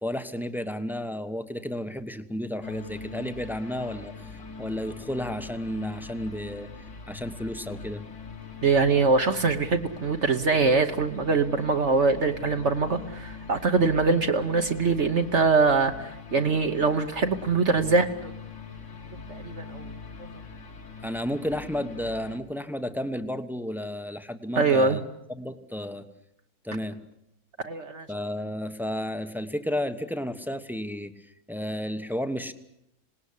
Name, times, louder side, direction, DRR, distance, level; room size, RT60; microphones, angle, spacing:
voice 1, 0.0-6.7 7.1-8.0 21.0-25.0 25.3-26.1 26.6-27.0 28.1-32.5, left 1 dB, ahead, 9 dB, 0.9 m, -32 dB
sound 1, 2.6-22.4, left 4 dB, 55° left, 2.2 m, -42 dB
voice 2, 8.6-18.3 19.3-19.9 24.6-25.0 27.6-28.1, right 4 dB, 50° right, 6 dB, 1.3 m, -23 dB
26.5 x 19.0 x 8.3 m, 0.81 s
omnidirectional pair, 1.6 m